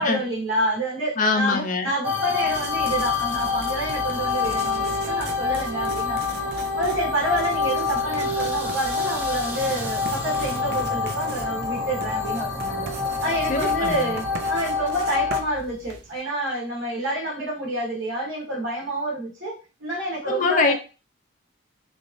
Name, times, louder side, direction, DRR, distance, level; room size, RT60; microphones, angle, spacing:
voice 1, 0.0-6.4 6.8-12.9 13.2-19.5 19.8-20.7, right 1 dB, 70° right, 1.4 m, -28 dB
voice 2, 1.2-1.9 13.5-14.1 20.2-20.7, left 4 dB, 40° left, 0.5 m, -23 dB
sound 1, 2.0-15.4, left 5 dB, 10° right, 0.6 m, -27 dB
Writing, 2.4-16.2, right 3 dB, 55° right, 0.4 m, -39 dB
3.3 x 2.5 x 2.5 m
head